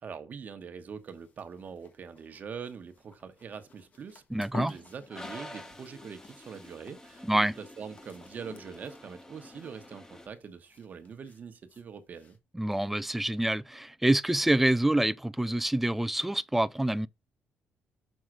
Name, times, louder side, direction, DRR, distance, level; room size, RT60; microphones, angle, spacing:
voice 1, 0.0-4.2 4.5-12.4, right 6 dB, 45° right, 1.0 m, -43 dB
sound 1, 0.8-12.4, left 4 dB, 40° left, 1.2 m, -51 dB
voice 2, 4.3-4.7 7.2-7.5 12.5-17.1, right 1 dB, 5° right, 0.3 m, -26 dB
Toilet flush, 5.1-10.3, left 1 dB, 15° left, 1.0 m, -48 dB
6.4 x 3.7 x 6.0 m
cardioid pair, 115°, 4 cm